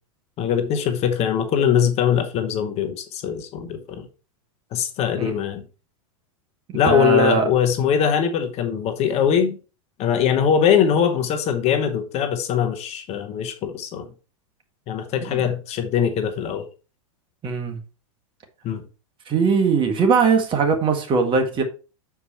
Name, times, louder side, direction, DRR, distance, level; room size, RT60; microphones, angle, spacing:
voice 1, 0.4-4.1 4.7-5.6 6.7-9.6 10.0-14.1 14.9-16.7 18.6-18.8, left 8 dB, 40° left, 1.1 m, -22 dB
voice 2, 6.7-7.5 15.2-15.4 17.4-17.8 19.3-21.6, right 5 dB, 30° right, 1.6 m, -20 dB
6.8 x 4.8 x 4.3 m
hypercardioid pair, 110°, 18 cm